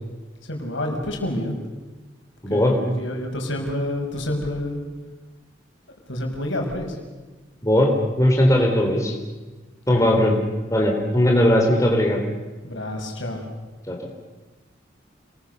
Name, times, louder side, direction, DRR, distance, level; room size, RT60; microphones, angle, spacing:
voice 1, 0.4-1.6 2.5-4.8 6.1-7.0 9.9-10.3 12.6-13.5, left 1 dB, 75° left, 2 dB, 5.5 m, -28 dB
voice 2, 2.4-2.7 7.6-9.1 9.9-10.4 10.7-12.2 13.9-14.0, left 1 dB, 15° left, 1 dB, 3.5 m, -18 dB
29.0 x 21.5 x 6.8 m, 1.2 s
head